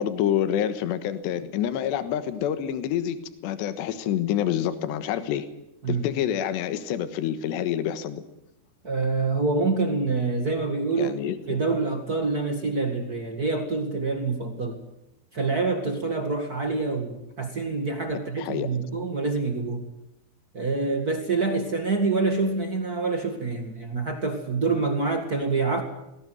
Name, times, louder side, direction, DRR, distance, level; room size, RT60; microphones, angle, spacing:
voice 1, 0.0-3.2 3.4-5.5 5.9-8.2 11.0-11.4 18.4-18.7, left 10 dB, 75° left, 11 dB, 3.5 m, -27 dB
voice 2, 8.8-11.2 11.5-14.8 15.3-19.8 20.5-25.8, right 3 dB, 60° right, 5 dB, 0.9 m, -26 dB
21.0 x 17.5 x 9.3 m, 0.88 s
omnidirectional pair, 5.2 m